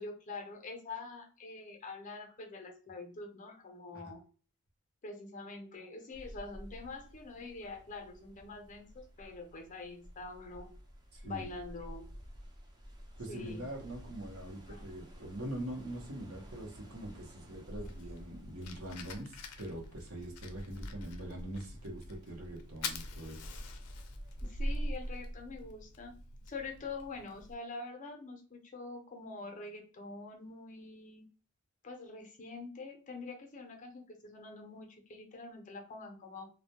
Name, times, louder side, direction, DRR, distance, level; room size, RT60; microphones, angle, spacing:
voice 1, 0.0-4.2 5.0-10.7 11.2-12.1 13.3-13.6 14.7-14.8 24.4-26.1 26.5-31.2 31.8-36.5, left 3 dB, 35° left, 3 dB, 0.5 m, -45 dB
sound 1, 6.1-24.9, equal, 20° right, 0.4 m, -50 dB
voice 2, 11.1-11.4 13.2-23.5, right 1 dB, 70° right, 1 dB, 0.8 m, -43 dB
Fire, 17.8-27.5, left 1 dB, 85° left, 0.4 m, -44 dB
2.1 x 2.1 x 2.8 m, 0.39 s
head